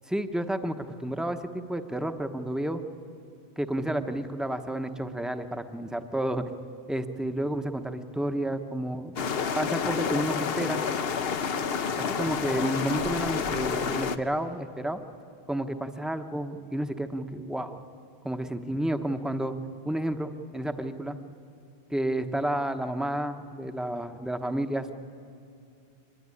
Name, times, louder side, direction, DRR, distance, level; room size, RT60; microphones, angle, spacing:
voice 1, 0.1-2.8 3.6-6.4 6.9-9.2 9.5-10.8 12.0-15.0 15.5-17.8 18.2-19.5 19.8-21.2 21.9-24.9, right 1 dB, ahead, 8 dB, 0.9 m, -31 dB
sound 1, 9.2-14.2, left 6 dB, 65° left, 1.1 m, -29 dB
24.5 x 20.5 x 9.8 m, 2.6 s
omnidirectional pair, 1.1 m